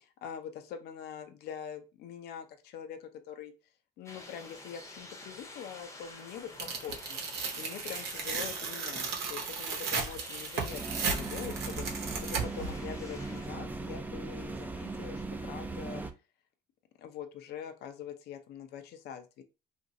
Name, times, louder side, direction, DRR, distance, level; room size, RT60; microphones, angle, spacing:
voice 1, 0.2-3.5 4.0-7.2 7.6-10.8 11.2-16.0 17.0-19.4, left 8 dB, 75° left, 6 dB, 0.5 m, -44 dB
sound 1, 4.1-13.5, left 2 dB, 15° left, 0.7 m, -49 dB
Tearing, 6.6-12.7, right 5 dB, 75° right, 0.8 m, -35 dB
sound 2, 10.7-16.1, right 3 dB, 10° right, 0.3 m, -38 dB
2.9 x 2.5 x 2.6 m, 0.29 s
cardioid pair, 110°, 17 cm